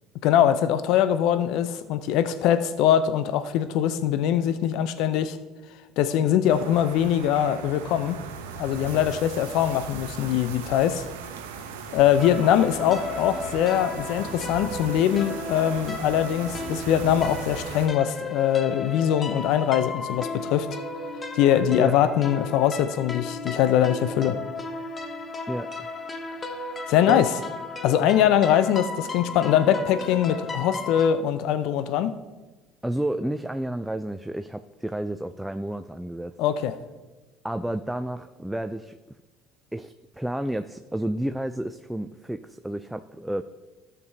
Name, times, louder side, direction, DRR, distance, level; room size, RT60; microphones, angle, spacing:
voice 1, 0.2-5.4 6.0-8.2 8.6-11.0 11.9-20.7 21.3-24.4 26.9-27.3 27.8-32.1 36.4-36.7, left 10 dB, 70° left, 12 dB, 0.6 m, -22 dB
sound 1, 6.5-17.9, right 6 dB, 90° right, 0.8 m, -38 dB
sound 2, 12.2-31.1, left 3 dB, 25° left, 0.8 m, -35 dB
voice 2, 25.5-25.9 27.1-27.2 32.8-36.3 37.4-39.0 39.7-43.4, right 1 dB, 5° right, 8 dB, 0.4 m, -31 dB
13.0 x 6.8 x 2.8 m, 1.2 s
hypercardioid pair, 75°, 0 cm